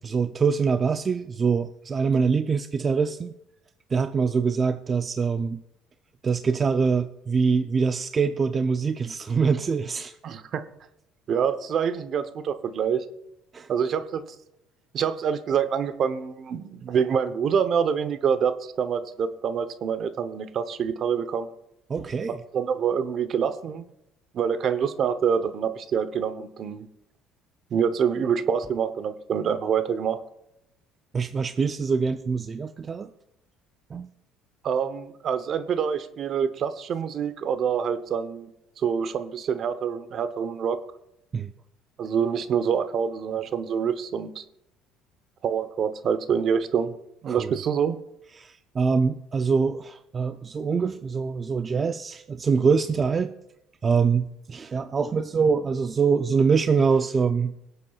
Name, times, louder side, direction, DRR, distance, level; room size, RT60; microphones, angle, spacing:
voice 1, 0.0-3.3 3.9-5.6 6.2-10.2 13.5-13.7 21.9-22.4 31.1-33.1 33.9-34.1 41.3-41.5 47.4-47.5 48.4-53.3 53.8-57.5, right 5 dB, 30° right, 9 dB, 0.5 m, -24 dB
voice 2, 10.2-10.6 11.3-13.0 13.7-14.2 14.9-21.5 22.5-23.9 24.3-26.9 27.7-30.2 34.6-38.5 38.8-40.8 42.0-44.4 45.4-46.9 47.2-48.0, right 7 dB, 50° right, 11 dB, 0.8 m, -26 dB
23.5 x 8.1 x 2.4 m, 0.82 s
supercardioid pair, 95°, 0 cm